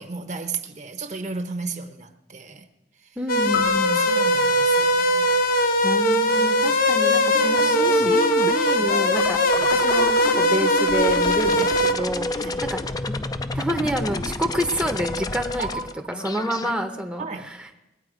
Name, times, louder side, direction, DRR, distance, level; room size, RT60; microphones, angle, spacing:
voice 1, 0.0-2.7 3.0-3.1 3.7-5.3 6.3-6.8 9.6-9.8 11.5-11.7 12.3-12.6 15.6-16.0 17.2-17.5, right 4 dB, 35° right, 0.8 m, -34 dB
voice 2, 3.2-4.0 5.8-9.4 9.7-12.8 13.1-13.2 13.5-15.7 16.1-17.7, equal, 5° right, 0.7 m, -28 dB
sound 1, 3.3-11.9, left 1 dB, 45° left, 0.8 m, -20 dB
sound 2, 3.5-6.0, left 8 dB, 80° left, 2.0 m, -34 dB
sound 3, 7.3-16.7, left 2 dB, 20° left, 0.4 m, -30 dB
20.5 x 8.8 x 5.0 m
head